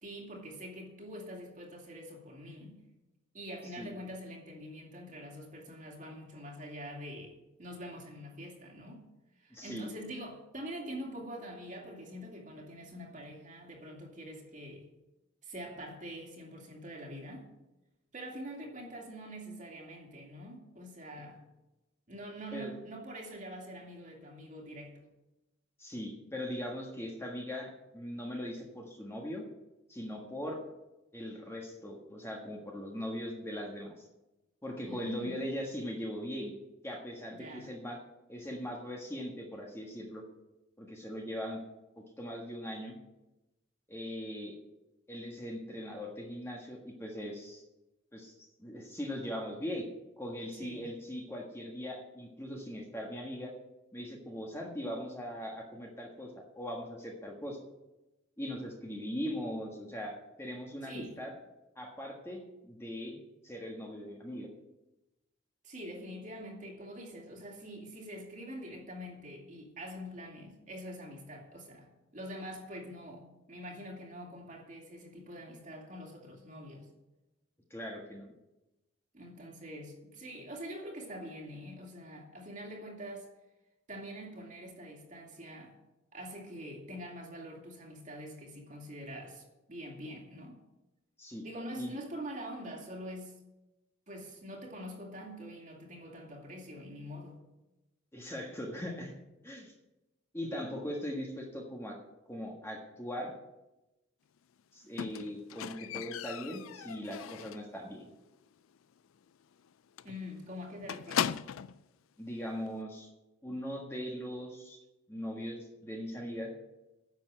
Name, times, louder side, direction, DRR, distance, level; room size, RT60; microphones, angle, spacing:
voice 1, 0.0-2.8 3.3-9.1 9.4-14.9 15.4-17.5 18.1-21.4 22.1-25.0 34.9-35.5 37.3-37.7 50.6-50.9 60.8-61.2 65.6-76.9 79.1-83.3 83.9-85.7 86.1-90.6 91.4-93.3 94.1-97.4 110.0-111.3, equal, 40° right, 0 dB, 2.4 m, -45 dB
voice 2, 9.5-9.9 22.5-22.7 25.8-29.4 29.9-30.6 31.1-33.9 34.6-36.5 36.8-38.0 38.3-40.2 40.8-41.6 42.2-43.0 43.9-44.5 45.1-47.6 48.1-48.3 48.6-49.8 50.2-53.5 53.9-57.6 58.4-61.3 61.7-63.2 63.4-64.5 77.7-78.3 91.2-91.5 91.7-91.9 98.1-99.1 99.4-99.7 100.3-101.9 102.3-103.3 104.7-108.1 112.2-113.1 113.4-114.8 115.1-116.5, equal, 10° left, 0 dB, 1.5 m, -40 dB
Squeak, 105.0-107.7 108.1-108.5 108.8-108.9 109.2-109.3 109.6-109.7 110.0-111.8 112.7-112.8, left 9 dB, 75° left, 0.4 m, -37 dB
10.5 x 7.3 x 7.6 m, 0.98 s
head